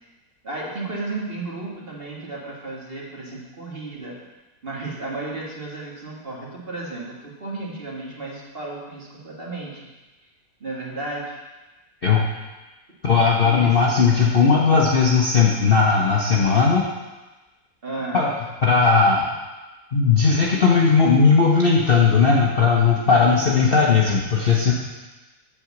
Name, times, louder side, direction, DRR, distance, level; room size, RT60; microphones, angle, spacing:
voice 1, 0.4-4.2 4.6-9.8 10.6-11.4 13.4-13.9 17.8-18.3 23.2-24.0, right 2 dB, 35° right, -4 dB, 1.7 m, -33 dB
voice 2, 13.0-16.9 18.1-18.3 18.6-19.3 19.9-24.7, left 5 dB, 45° left, -3 dB, 0.8 m, -17 dB
7.7 x 4.8 x 7.1 m, 1.2 s
omnidirectional pair, 1.8 m